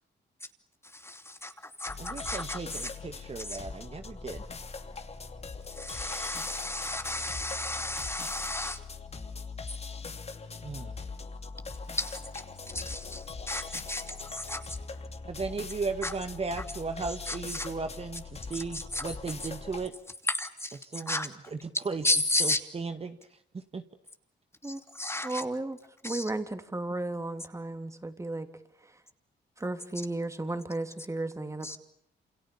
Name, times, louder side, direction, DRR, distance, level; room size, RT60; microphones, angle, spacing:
voice 1, 0.8-2.9 3.4-3.6 5.7-8.8 11.9-14.8 16.0-16.1 17.3-17.7 18.5-19.1 20.2-21.3 21.7-22.6 24.6-25.4 26.0-26.3 31.6-31.8, left 2 dB, 15° left, 8 dB, 2.8 m, -33 dB
sound 1, 1.9-19.9, left 4 dB, 35° left, 2.8 m, -42 dB
voice 2, 2.0-4.4 10.6-10.9 15.2-19.9 20.8-22.0 22.4-23.2 23.5-23.8, right 4 dB, 35° right, 7 dB, 2.0 m, -36 dB
voice 3, 25.2-25.8 26.0-28.5 29.6-31.8, right 2 dB, 15° right, 8 dB, 3.5 m, -34 dB
28.5 x 28.5 x 7.1 m, 0.71 s
cardioid pair, 95°, 19 cm